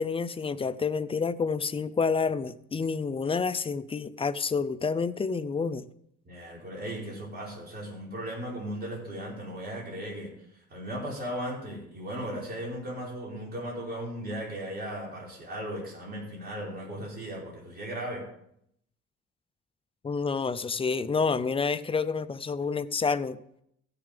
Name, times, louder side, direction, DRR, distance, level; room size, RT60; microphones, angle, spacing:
voice 1, 0.0-5.9 20.0-23.4, left 5 dB, 20° left, 13 dB, 0.5 m, -29 dB
voice 2, 6.2-10.3 10.7-18.2, right 1 dB, 30° right, -3 dB, 4.8 m, -37 dB
15.5 x 6.9 x 5.2 m, 0.73 s
cardioid pair, 135°, 30 cm